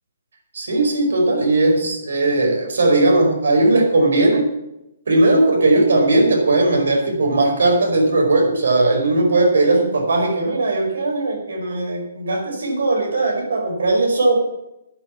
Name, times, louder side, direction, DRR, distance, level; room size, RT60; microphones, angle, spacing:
voice 1, 0.5-4.5 5.1-14.4, right 2 dB, 85° right, 1 dB, 5.3 m, -18 dB
11.0 x 8.6 x 7.3 m, 0.86 s
hypercardioid pair, 175°, 0 cm